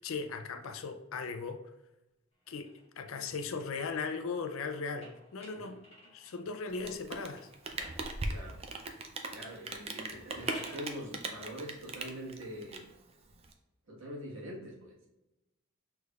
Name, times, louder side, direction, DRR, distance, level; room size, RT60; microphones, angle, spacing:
voice 1, 0.0-1.6 2.5-2.7 3.0-5.8 6.0-7.5, left 4 dB, 70° left, 0.5 m, -38 dB
sound 1, 2.4-6.5 7.3-8.7 10.1-10.9, equal, 30° left, 1.6 m, -53 dB
Rain, 6.7-13.5, right 3 dB, 30° right, 0.4 m, -39 dB
voice 2, 9.3-12.8 13.9-14.9, equal, 60° right, 1.4 m, -44 dB
6.3 x 3.4 x 2.4 m
head